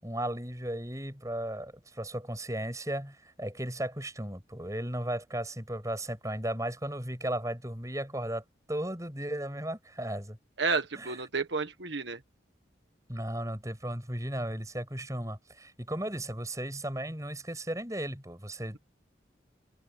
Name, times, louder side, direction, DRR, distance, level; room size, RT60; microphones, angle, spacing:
voice 1, 0.0-8.4 8.7-10.4 11.0-11.1 13.1-18.8, right 1 dB, 15° right, 6.9 m, -35 dB
voice 2, 10.6-12.2, right 4 dB, 75° right, 1.6 m, -31 dB
head